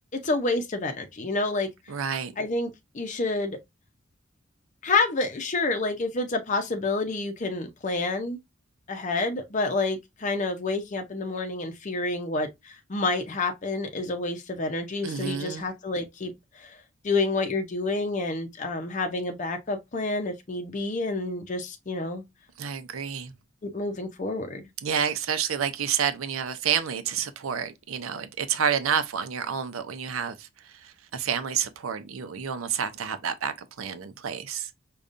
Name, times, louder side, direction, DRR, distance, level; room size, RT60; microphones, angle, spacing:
voice 1, 0.1-1.7 2.4-3.6 4.8-8.4 8.9-16.8 17.0-22.2 23.6-24.6, left 3 dB, 35° left, 0.6 m, -29 dB
voice 2, 1.9-2.3 15.0-15.7 22.6-23.3 24.8-34.7, right 7 dB, 85° right, 0.5 m, -29 dB
5.1 x 2.3 x 2.5 m
head